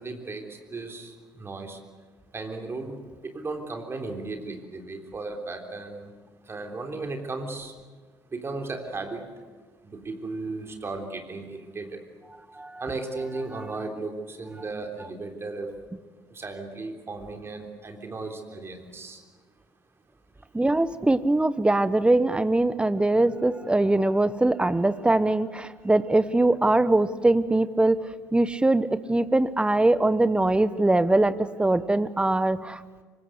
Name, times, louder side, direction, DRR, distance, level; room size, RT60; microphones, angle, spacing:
voice 1, 0.0-1.8 2.3-3.0 3.2-6.1 6.5-7.7 8.3-9.2 9.8-11.9 12.8-15.7 16.3-19.2, right 3 dB, 25° right, 3 dB, 3.5 m, -35 dB
voice 2, 20.5-28.0 28.3-33.0, right 2 dB, 10° right, 15 dB, 1.1 m, -22 dB
24.5 x 22.0 x 8.2 m, 1.4 s
figure-of-eight pair, 50°, 9 cm